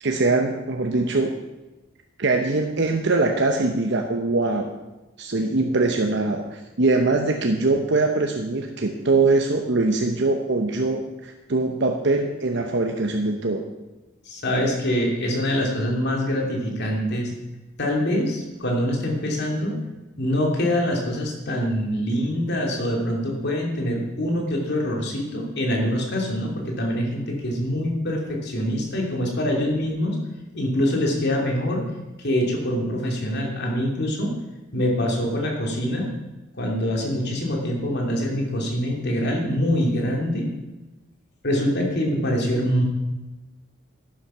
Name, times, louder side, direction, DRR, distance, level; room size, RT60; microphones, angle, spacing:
voice 1, 0.0-1.3 2.2-4.7 5.2-13.7, right 3 dB, 60° right, 3 dB, 1.0 m, -22 dB
voice 2, 14.2-17.3 17.8-19.7 20.2-30.2 30.5-31.8 32.2-34.3 34.7-36.1 36.5-40.5 41.4-42.8, equal, 55° left, 0 dB, 3.0 m, -24 dB
11.5 x 10.5 x 5.8 m, 1.1 s
head